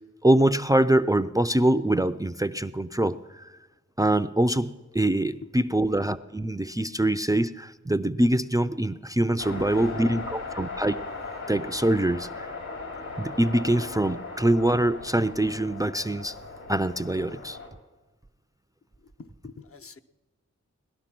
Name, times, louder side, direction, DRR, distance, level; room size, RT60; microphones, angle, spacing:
voice 1, 0.2-3.5 4.0-11.0 11.5-12.5 13.2-16.4 16.7-17.6, right 1 dB, 10° right, 12 dB, 0.5 m, -24 dB
voice 2, 9.2-10.1 19.0-20.0, left 5 dB, 50° left, 9 dB, 0.8 m, -44 dB
sound 1, 9.4-17.7, left 3 dB, 65° left, 3.1 m, -38 dB
18.5 x 12.0 x 6.0 m, 1.2 s
cardioid pair, 60°, 29 cm